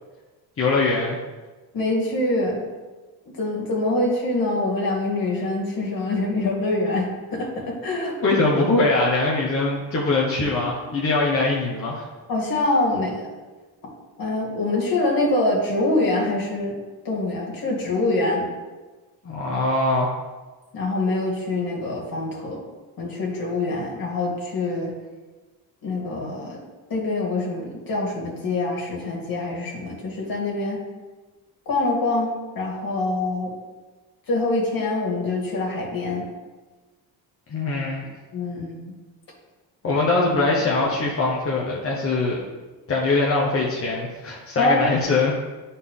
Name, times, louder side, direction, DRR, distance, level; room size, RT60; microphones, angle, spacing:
voice 1, 0.6-1.2 8.2-12.1 19.2-20.1 37.5-38.0 39.8-42.4 42.9-45.4, left 3 dB, 35° left, -4 dB, 1.2 m, -22 dB
voice 2, 1.7-2.6 3.4-8.1 12.3-13.3 14.2-16.7 17.0-18.5 20.7-22.6 23.0-24.9 25.8-26.6 26.9-30.8 31.7-33.5 34.3-36.3 38.3-38.9 44.6-44.9, left 2 dB, 60° left, -3 dB, 2.2 m, -25 dB
9.6 x 4.2 x 3.8 m, 1.3 s
cardioid pair, 115°, 39 cm